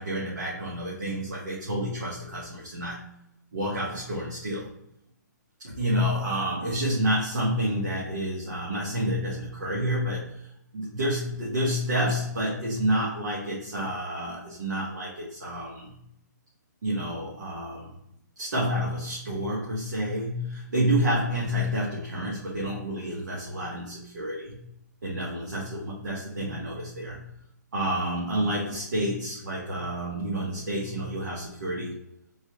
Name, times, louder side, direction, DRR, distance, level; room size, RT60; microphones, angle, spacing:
voice 1, 0.0-3.0 3.5-4.7 5.6-10.5 10.7-16.0 16.8-17.9 18.4-24.6 25.0-27.2 27.7-32.0, equal, 65° right, -6 dB, 1.5 m, -29 dB
3.9 x 3.2 x 3.7 m, 0.76 s
hypercardioid pair, 170°, 10 cm